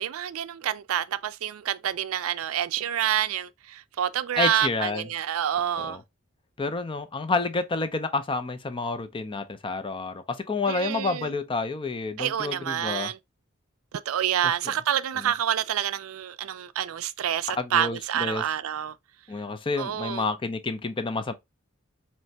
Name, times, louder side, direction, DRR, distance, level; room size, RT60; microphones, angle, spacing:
voice 1, 0.0-6.0 10.7-11.3 12.2-13.2 14.1-18.9 19.8-20.2, right 10 dB, 85° right, 0.4 m, -28 dB
voice 2, 4.4-5.1 5.8-6.0 6.6-13.1 14.4-14.5 17.6-18.4 19.3-21.3, left 3 dB, 25° left, 0.4 m, -29 dB
4.3 x 3.2 x 2.8 m
head